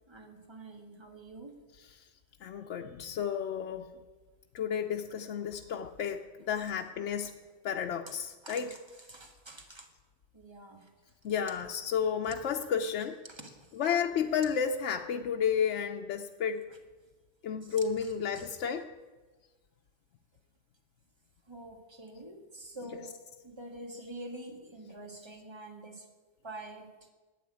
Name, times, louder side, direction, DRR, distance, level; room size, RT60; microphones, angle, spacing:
voice 1, 0.1-1.6 6.6-6.7 8.1-8.2 8.4-9.9 10.3-10.9 12.3-12.4 13.2-13.8 16.7-16.8 17.6-18.5 21.5-23.2 23.4-26.1 26.4-26.9, right 1 dB, 25° right, 3 dB, 1.7 m, -47 dB
voice 2, 2.4-3.9 4.5-6.2 6.5-7.3 7.6-8.7 11.2-13.2 13.7-16.6 17.4-18.8, left 7 dB, 80° left, 4 dB, 1.0 m, -32 dB
12.0 x 8.6 x 9.6 m, 1.3 s
omnidirectional pair, 1.2 m